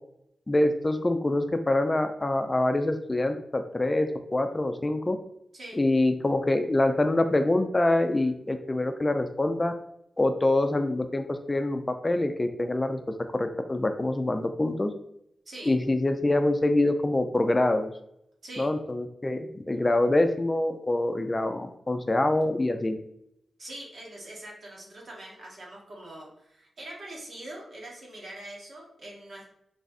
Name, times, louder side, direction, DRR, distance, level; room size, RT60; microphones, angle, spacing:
voice 1, 0.5-5.2 5.8-9.7 10.2-14.9 15.7-17.9 18.6-23.0, left 2 dB, 30° left, 7 dB, 0.4 m, -25 dB
voice 2, 23.6-29.5, right 1 dB, 65° right, -3 dB, 1.4 m, -43 dB
3.3 x 2.4 x 4.0 m, 0.75 s
cardioid pair, 50°, 0 cm